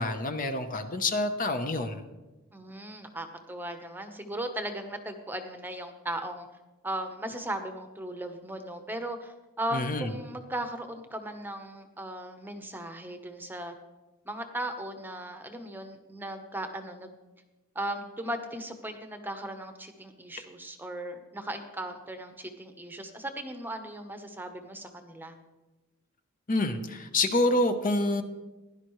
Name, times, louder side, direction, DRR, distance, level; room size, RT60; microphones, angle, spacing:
voice 1, 0.0-2.0 9.7-10.1 26.5-28.2, left 2 dB, 40° left, 7 dB, 0.8 m, -27 dB
voice 2, 2.5-6.5 6.8-13.7 14.2-17.2 17.7-25.3, right 1 dB, 10° right, 6 dB, 0.9 m, -37 dB
16.0 x 11.0 x 3.2 m, 1.1 s
head